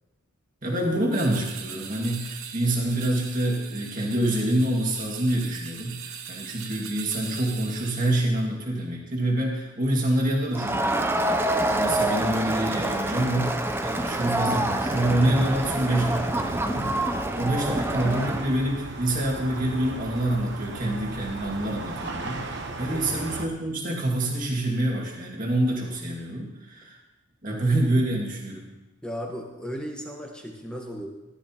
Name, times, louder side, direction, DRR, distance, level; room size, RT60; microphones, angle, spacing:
voice 1, 0.6-27.0 27.4-28.7, right 1 dB, 40° right, -1 dB, 2.0 m, -26 dB
sound 1, 1.1-8.4, right 8 dB, 80° right, 1.0 m, -40 dB
Crowd, 10.5-18.5, right 1 dB, 10° right, 0.5 m, -26 dB
sound 2, 14.9-23.5, right 2 dB, 55° right, 1.1 m, -37 dB
voice 2, 29.0-31.1, equal, 5° left, 0 dB, 1.2 m, -35 dB
14.5 x 12.0 x 3.0 m, 1.0 s
head